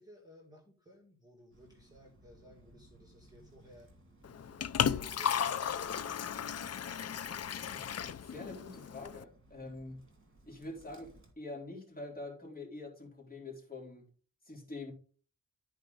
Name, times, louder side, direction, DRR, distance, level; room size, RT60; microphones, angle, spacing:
voice 1, 0.0-3.9 4.4-6.3 6.8-7.1, equal, 10° right, 0 dB, 2.2 m, -58 dB
Bird, 1.5-11.3, right 1 dB, 35° right, 2.4 m, -61 dB
Liquid, 4.2-9.2, left 8 dB, 45° left, 0.5 m, -35 dB
voice 2, 7.7-10.0 10.4-14.1 14.5-14.9, left 2 dB, 25° left, -2 dB, 3.8 m, -45 dB
13.0 x 4.8 x 4.0 m, 0.40 s
wide cardioid pair, 105°, 34 cm